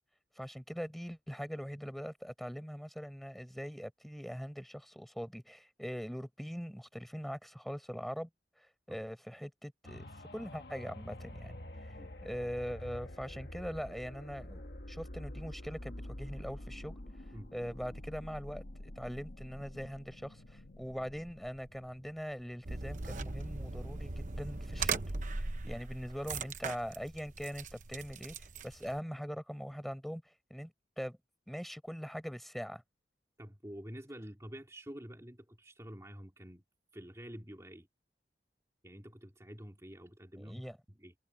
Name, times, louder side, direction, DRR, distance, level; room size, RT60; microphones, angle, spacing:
voice 1, 0.3-8.3 8.6-11.6 11.8-11.9 12.2-17.0 17.5-18.6 19.0-25.0 25.3-30.7 31.0-31.2 31.5-32.8 40.4-40.8, equal, ahead, 4.7 m, -42 dB
sound 1, 9.8-23.5 24.0-24.1, left 1 dB, 65° left, 1.6 m, -48 dB
sound 2, 22.6-29.0, right 4 dB, 45° right, 1.0 m, -39 dB
voice 2, 33.4-36.6 36.9-37.9 38.8-41.1, equal, 15° right, 2.4 m, -48 dB
head